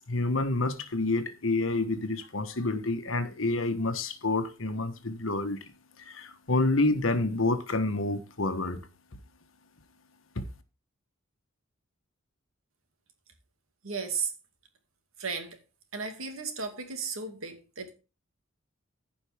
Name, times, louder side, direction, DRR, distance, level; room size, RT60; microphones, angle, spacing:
voice 1, 0.1-5.6 6.1-8.8 10.3-10.5, left 2 dB, 70° left, 1.3 m, -28 dB
voice 2, 13.8-14.3 15.2-15.6 15.9-17.9, right 5 dB, 80° right, 2.3 m, -34 dB
15.0 x 5.4 x 3.5 m
head